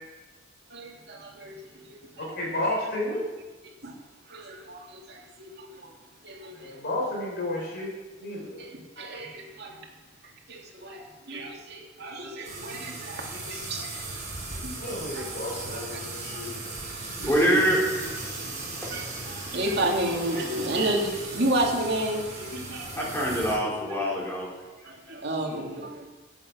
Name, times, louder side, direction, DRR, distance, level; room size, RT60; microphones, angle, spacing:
voice 1, 0.7-2.3 3.8-3.9 4.3-5.9 6.2-6.8 8.6-9.7 10.5-14.0 14.5-14.8 15.1-15.2 15.7-16.0 16.3-16.4 18.9-23.1 24.0-24.1 24.8-26.1, right 1 dB, 55° right, 0 dB, 2.6 m, -32 dB
voice 2, 2.2-3.2 6.5-7.9 8.2-8.6 9.7-9.8 13.5-13.7 14.8-16.5 17.0-17.8 20.2-20.7, left 1 dB, 55° left, -3 dB, 4.9 m, -32 dB
sound 1, 12.4-23.6, right 2 dB, 35° right, 5.3 m, -37 dB
voice 3, 17.2-18.2 18.8-18.9 22.9-24.5 24.8-24.9, equal, 10° left, -5 dB, 4.1 m, -25 dB
11.0 x 8.8 x 7.1 m, 1.2 s
head